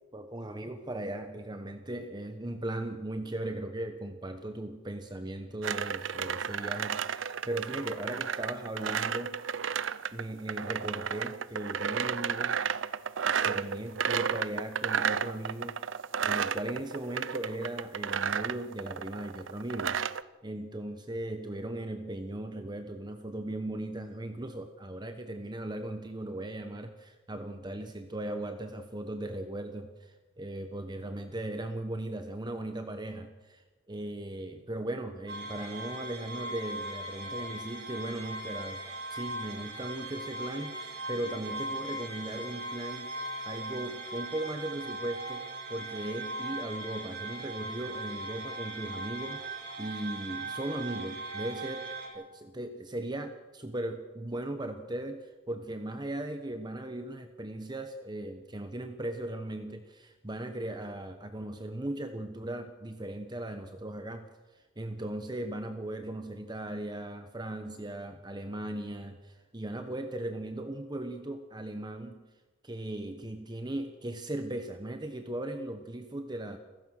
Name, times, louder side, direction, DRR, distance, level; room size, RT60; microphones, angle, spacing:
voice 1, 0.1-9.4 10.1-12.6 13.4-16.0 16.2-20.0 20.4-38.8 39.1-43.1 43.5-51.9 52.1-64.3 64.5-72.2 72.6-76.6, right 1 dB, 20° right, 7 dB, 1.1 m, -38 dB
sound 1, 5.6-20.2, right 7 dB, 75° right, 0.6 m, -32 dB
sound 2, 35.3-52.1, right 2 dB, 60° right, 5.2 m, -39 dB
28.5 x 15.5 x 6.5 m, 1.3 s
head